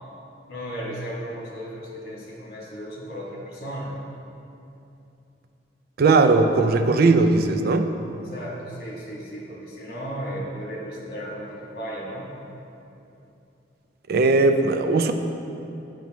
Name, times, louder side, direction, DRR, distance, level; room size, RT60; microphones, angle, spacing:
voice 1, 0.5-3.9 8.2-12.3, equal, 60° left, -4 dB, 1.6 m, -35 dB
voice 2, 6.0-7.9 14.1-15.1, right 3 dB, 55° right, 7 dB, 0.4 m, -18 dB
8.8 x 5.1 x 3.0 m, 2.8 s
head